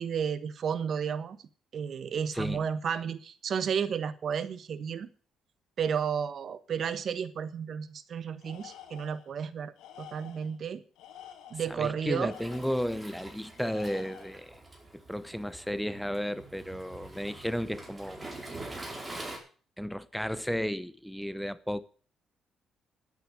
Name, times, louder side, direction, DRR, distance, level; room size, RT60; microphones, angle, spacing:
voice 1, 0.0-1.4 1.7-5.1 5.8-10.8 11.5-12.3, right 7 dB, 55° right, 1.2 m, -32 dB
voice 2, 2.3-2.6 11.7-14.6 15.1-18.3 19.8-21.8, equal, ahead, 0.8 m, -33 dB
Tools, 8.4-9.3 9.8-10.6 11.0-12.9 13.6-14.5, left 10 dB, 90° left, 2.4 m, -50 dB
Waves surf, 12.3-19.4, right 2 dB, 20° right, 4.5 m, -45 dB
11.0 x 9.0 x 8.1 m
cardioid pair, 90°, 0 cm